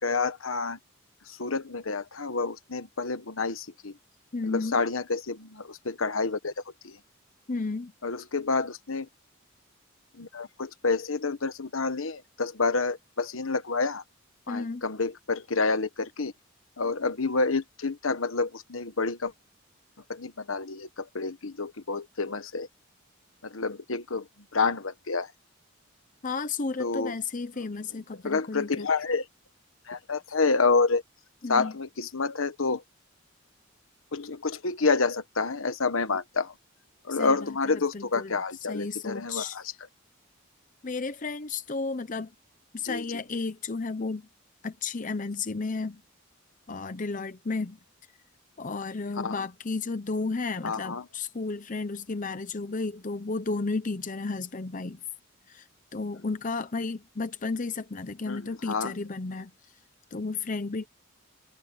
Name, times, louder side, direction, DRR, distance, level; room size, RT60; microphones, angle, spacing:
voice 1, 0.0-0.8 1.3-4.0 4.4-6.5 6.8-7.0 8.0-9.1 10.2-14.0 14.5-16.3 16.8-19.3 20.1-22.7 23.4-25.3 26.8-27.1 28.2-29.3 29.9-31.0 31.5-32.8 34.1-36.5 37.0-39.6 42.8-43.2 49.2-49.4 50.6-51.1 58.3-58.9, left 4 dB, 75° left, 1.3 m, -28 dB
voice 2, 4.3-4.8 7.5-7.9 14.5-14.8 26.2-28.9 31.4-31.7 37.1-38.3 38.7-39.6 40.8-42.3 42.7-44.3 44.6-46.0 46.7-47.8 48.6-55.0 55.5-55.7 55.9-59.5 60.1-60.9, left 3 dB, 40° left, 0.7 m, -33 dB
head